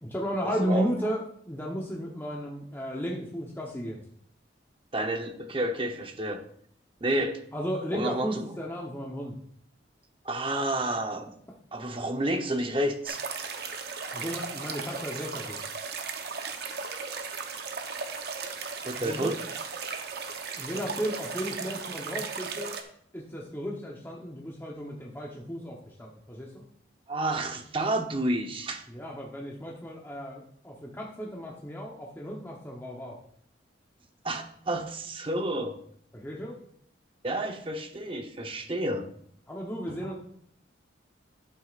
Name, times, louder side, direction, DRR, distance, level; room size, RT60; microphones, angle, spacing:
voice 1, 0.0-4.0 7.5-9.3 14.1-15.6 19.0-19.4 20.6-22.7 23.1-26.6 28.9-33.2 36.1-36.6 39.5-40.2, equal, 10° left, -2 dB, 0.9 m, -34 dB
voice 2, 4.9-6.4 7.0-7.4 7.9-8.4 10.2-11.2 11.7-13.2 18.8-19.4 27.1-28.9 34.2-35.8 37.2-39.1 39.9-40.0, right 1 dB, 25° right, 5 dB, 0.9 m, -30 dB
sound 1, 13.0-22.8, right 5 dB, 55° right, 0.9 m, -36 dB
11.5 x 8.2 x 2.5 m, 0.65 s
head